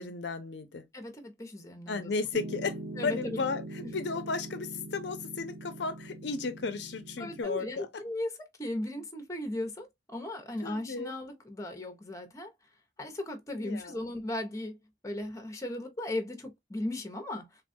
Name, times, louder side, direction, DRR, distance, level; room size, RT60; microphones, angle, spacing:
voice 1, 0.0-0.8 1.9-8.0 10.6-11.1 13.5-14.0, left 4 dB, 65° left, 0.5 m, -34 dB
voice 2, 0.9-2.1 3.0-3.4 7.2-12.5 13.0-14.8 15.0-17.5, left 1 dB, 15° left, 0.7 m, -37 dB
Piano, 2.3-7.4, right 2 dB, 55° right, 1.0 m, -42 dB
3.5 x 2.2 x 2.5 m
head